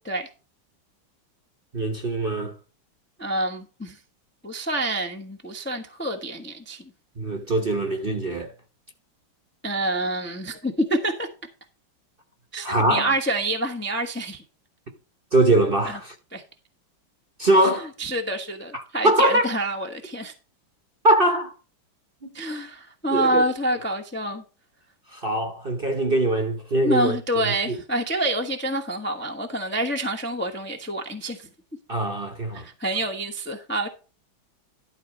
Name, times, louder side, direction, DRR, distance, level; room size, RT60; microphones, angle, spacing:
voice 1, 1.7-2.5 7.2-8.5 12.6-13.1 15.3-16.1 17.4-17.9 19.0-19.5 21.0-21.5 23.1-23.4 25.1-27.8 31.9-32.7, right 1 dB, 35° right, 1.0 m, -22 dB
voice 2, 3.2-4.0 4.4-6.8 9.6-11.3 12.5-14.4 15.8-16.0 16.3-16.4 18.0-20.3 22.3-24.4 26.8-31.5 32.5-33.9, right 1 dB, 10° left, 0.7 m, -27 dB
12.0 x 4.1 x 6.3 m
omnidirectional pair, 2.2 m